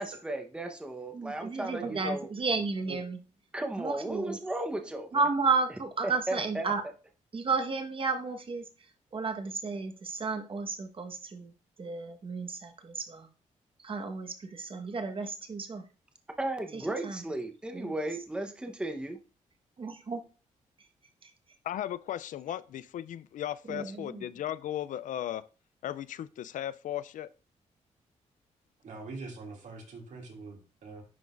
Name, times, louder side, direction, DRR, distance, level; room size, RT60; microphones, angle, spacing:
voice 1, 0.0-2.3 3.5-5.2 6.0-6.7 16.4-19.2, right 1 dB, 5° right, 0.8 m, -35 dB
voice 2, 1.1-3.2 3.8-4.4 5.1-6.8 7.3-8.7 9.1-11.5 11.8-13.3 13.8-15.8 16.7-17.2 17.7-17.9 19.8-20.2 21.2-21.3 23.7-24.3, right 4 dB, 40° right, 1.2 m, -32 dB
voice 3, 21.6-25.5 25.8-27.3, left 11 dB, 75° left, 0.4 m, -36 dB
voice 4, 28.8-31.0, right 3 dB, 70° right, 2.3 m, -43 dB
10.5 x 3.8 x 2.5 m
cardioid pair, 90°, 13 cm